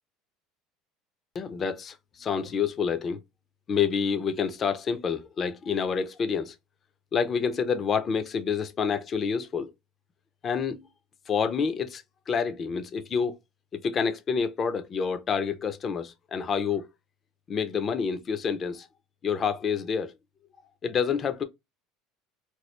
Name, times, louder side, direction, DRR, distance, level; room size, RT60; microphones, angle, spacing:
voice 1, 1.3-3.2 3.7-6.6 7.1-9.7 10.4-10.9 11.3-13.4 13.7-16.9 17.5-18.9 19.2-20.1 20.8-21.4, left 6 dB, 25° left, 0.4 m, -28 dB
3.0 x 2.3 x 3.1 m
cardioid pair, 170°, 0 cm